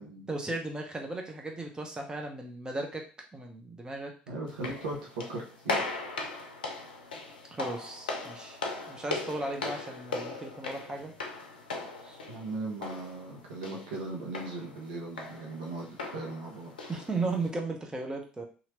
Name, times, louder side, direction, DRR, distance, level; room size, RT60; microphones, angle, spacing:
voice 1, 0.0-3.0 3.3-4.1 7.6-8.6 8.9-11.1 12.0-12.2 16.9-18.4, right 2 dB, 15° right, 2 dB, 0.8 m, -36 dB
voice 2, 4.3-6.0 12.3-16.7, right 2 dB, 75° right, -1 dB, 0.8 m, -38 dB
sound 1, 4.5-17.5, left 3 dB, 80° left, 0.5 m, -39 dB
2.9 x 2.5 x 3.0 m, 0.37 s
figure-of-eight pair, 60°, 5 cm